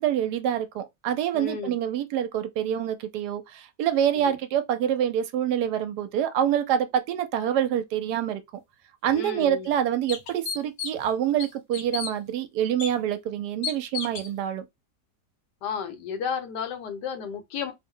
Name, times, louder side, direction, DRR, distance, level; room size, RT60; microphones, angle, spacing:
voice 1, 0.0-8.4 9.0-14.6, right 10 dB, 75° right, 1.1 m, -26 dB
voice 2, 1.3-1.8 4.2-4.4 9.1-9.7 15.6-17.7, left 6 dB, 80° left, 1.3 m, -33 dB
sound 1, 9.0-9.1 9.7-9.8 10.1-11.1 11.4-12.1 12.8-12.9 13.6-14.3, left 6 dB, 60° left, 1.0 m, -32 dB
3.0 x 2.0 x 3.6 m
omnidirectional pair, 1.8 m